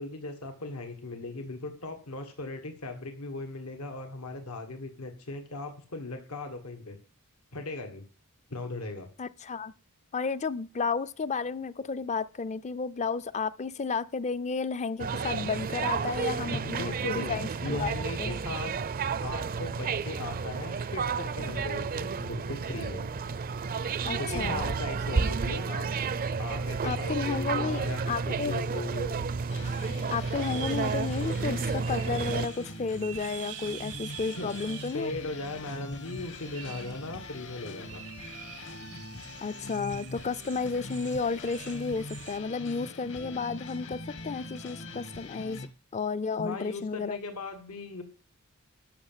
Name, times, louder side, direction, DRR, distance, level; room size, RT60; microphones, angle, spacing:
voice 1, 0.0-7.0 7.5-8.0 8.5-9.1 16.5-18.7 19.2-23.0 24.1-25.9 26.4-29.2 34.3-38.0 46.4-48.0, left 2 dB, 85° left, 1.6 m, -38 dB
voice 2, 9.2-9.7 10.1-17.9 18.2-18.3 24.1-24.7 26.8-28.5 30.1-35.1 39.4-47.2, left 5 dB, 30° left, 0.5 m, -32 dB
sound 1, 15.0-32.5, right 5 dB, 40° right, 0.5 m, -31 dB
sound 2, 27.8-42.4, right 11 dB, 85° right, 1.0 m, -47 dB
sound 3, 29.5-45.7, left 2 dB, 60° left, 1.4 m, -43 dB
12.5 x 5.9 x 7.4 m
head